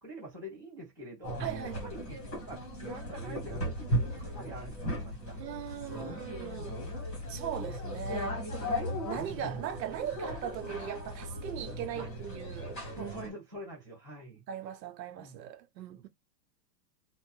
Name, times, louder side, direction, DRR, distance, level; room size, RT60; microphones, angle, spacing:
voice 1, 0.0-5.4 6.4-6.8 8.2-8.4 12.0-12.1 12.9-14.4 15.2-15.4, right 1 dB, 15° right, 0.4 m, -46 dB
sound 1, 1.2-13.3, equal, 10° left, 1.0 m, -37 dB
voice 2, 1.4-1.9 5.4-6.8 7.3-8.3 9.0-13.3 14.5-16.1, right 9 dB, 85° right, 0.8 m, -39 dB
2.6 x 2.1 x 3.0 m
supercardioid pair, 175°, 49 cm